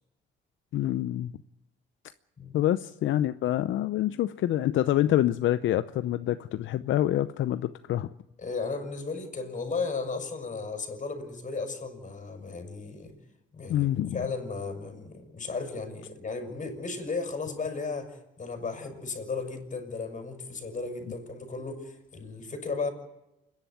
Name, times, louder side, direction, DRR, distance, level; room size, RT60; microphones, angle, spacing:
voice 1, 0.7-1.3 2.5-8.1 13.7-14.2, left 13 dB, 75° left, 12 dB, 0.7 m, -26 dB
voice 2, 8.4-13.1 13.5-22.9, left 4 dB, 40° left, 5 dB, 6.1 m, -35 dB
28.5 x 11.0 x 9.3 m, 0.91 s
cardioid pair, 90°, 20 cm